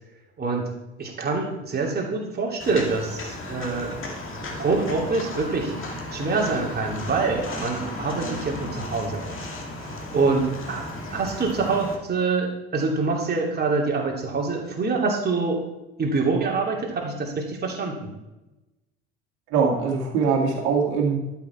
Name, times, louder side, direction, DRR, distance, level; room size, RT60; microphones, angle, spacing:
voice 1, 0.4-0.7 1.0-4.0 4.6-5.7 6.1-9.5 9.8-15.6 16.0-18.1, right 4 dB, 30° right, -1 dB, 2.8 m, -25 dB
Walk footsteps, 2.6-11.9, left 1 dB, 40° left, 2.2 m, -35 dB
voice 2, 19.5-21.2, right 5 dB, 60° right, -2 dB, 2.2 m, -22 dB
12.0 x 6.2 x 4.5 m, 1.0 s
figure-of-eight pair, 65°, 33 cm